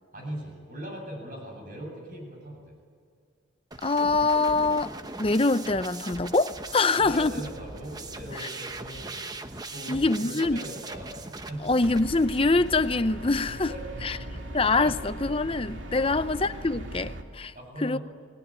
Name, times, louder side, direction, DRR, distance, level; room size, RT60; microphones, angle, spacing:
voice 1, 0.1-2.8 6.8-11.6 13.7-14.3 14.8-14.9 16.0-16.2 17.5-18.0, right 1 dB, 45° right, 8.0 m, -40 dB
sound 1, 3.7-13.0, right 3 dB, 20° right, 1.0 m, -40 dB
voice 2, 3.8-4.9 5.2-7.3 9.9-10.6 11.6-13.7 14.0-14.2 14.5-17.5 17.8-18.0, left 3 dB, 30° left, 0.6 m, -24 dB
sound 2, 11.8-17.2, right 1 dB, 70° right, 2.6 m, -39 dB
29.5 x 20.0 x 9.0 m
head